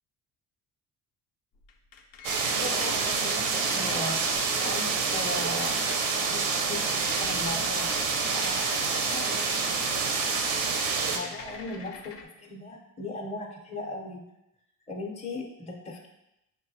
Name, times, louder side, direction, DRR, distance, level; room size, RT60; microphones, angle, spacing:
sound 1, 1.5-6.1 6.4-6.6 6.9-12.2, left 5 dB, 75° left, 0.6 m, -45 dB
sound 2, 2.2-11.2, right 4 dB, 90° right, 0.6 m, -27 dB
voice 1, 2.6-4.2 4.6-5.8 6.2-7.9 8.3-10.0 11.0-14.2 14.9-16.1, left 2 dB, 15° left, 0 dB, 0.6 m, -38 dB
5.3 x 2.2 x 2.7 m, 0.88 s
supercardioid pair, 55°, 44 cm